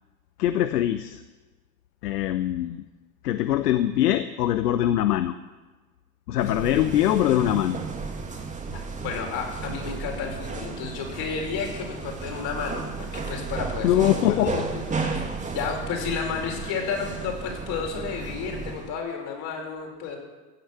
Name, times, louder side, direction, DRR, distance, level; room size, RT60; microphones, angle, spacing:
voice 1, 0.4-1.2 2.0-2.8 3.2-5.3 6.3-7.8 13.8-14.7 16.4-16.5, left 12 dB, 70° left, 11 dB, 0.9 m, -23 dB
sound 1, 6.4-19.0, right 4 dB, 15° right, 2.0 m, -33 dB
voice 2, 8.7-20.2, left 6 dB, 45° left, 1 dB, 5.1 m, -32 dB
16.0 x 9.8 x 7.2 m, 1.3 s
hypercardioid pair, 95°, 49 cm